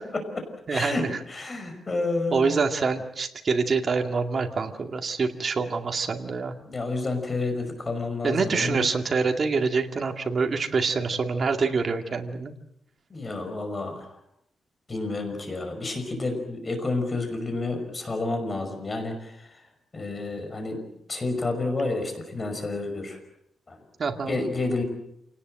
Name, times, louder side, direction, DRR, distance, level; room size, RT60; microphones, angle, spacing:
voice 1, 0.1-2.5 6.6-8.9 13.1-14.1 14.9-19.6 19.9-20.8 21.1-23.2 23.7-23.8 24.3-24.8, left 3 dB, 30° left, 6 dB, 5.6 m, -30 dB
voice 2, 0.7-1.1 2.3-6.5 8.2-12.5 24.0-24.4, right 4 dB, 45° right, 4 dB, 2.1 m, -26 dB
28.0 x 19.0 x 7.8 m, 0.80 s
wide cardioid pair, 125°, 0 cm